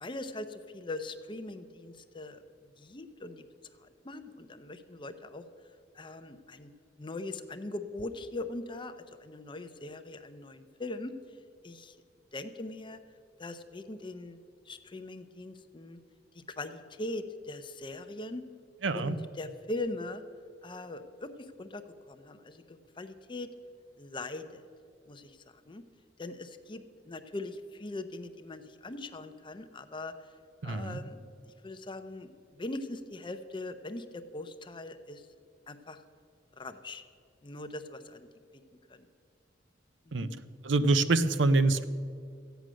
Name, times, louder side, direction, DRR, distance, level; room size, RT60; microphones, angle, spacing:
voice 1, 0.0-2.4 2.8-3.5 3.8-5.4 5.9-6.7 7.0-11.1 11.6-12.0 12.3-13.0 13.4-14.4 14.7-16.0 16.3-18.4 18.9-20.2 20.6-23.5 24.0-24.7 25.1-25.8 26.2-30.1 30.6-35.3 35.7-36.0 36.6-37.0 37.4-38.3 38.9-39.1 40.1-40.3, left 2 dB, 25° left, 9 dB, 0.7 m, -41 dB
voice 2, 18.8-19.2 30.6-31.0 40.1-40.3 40.6-41.8, right 3 dB, 80° right, 12 dB, 0.6 m, -25 dB
14.0 x 9.1 x 6.3 m, 2.3 s
head